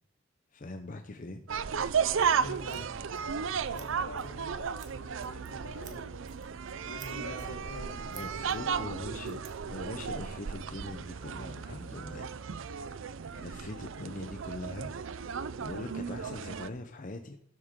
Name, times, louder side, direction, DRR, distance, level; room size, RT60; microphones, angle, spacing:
voice 1, 0.5-1.8 8.1-12.3 12.6-13.0 13.3-14.9 15.6-17.4, left 2 dB, 40° left, 6 dB, 0.7 m, -42 dB
sound 1, 1.5-16.7, right 6 dB, 65° right, 0.5 m, -34 dB
Scissors, 2.1-10.1, right 7 dB, 35° right, 1.4 m, -57 dB
voice 2, 2.3-2.9 3.7-6.4 6.8-9.3, equal, 90° left, -2 dB, 4.2 m, -45 dB
12.5 x 7.9 x 3.7 m, 0.67 s
head